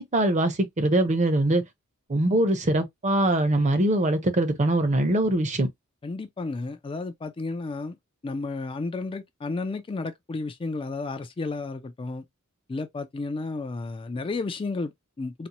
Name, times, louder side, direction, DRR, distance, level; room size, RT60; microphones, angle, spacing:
voice 1, 0.0-1.6 2.1-5.7, right 1 dB, 35° right, 0.7 m, -22 dB
voice 2, 6.0-8.0 8.2-12.2 12.7-15.5, left 3 dB, 25° left, 0.3 m, -32 dB
4.1 x 2.1 x 2.9 m
head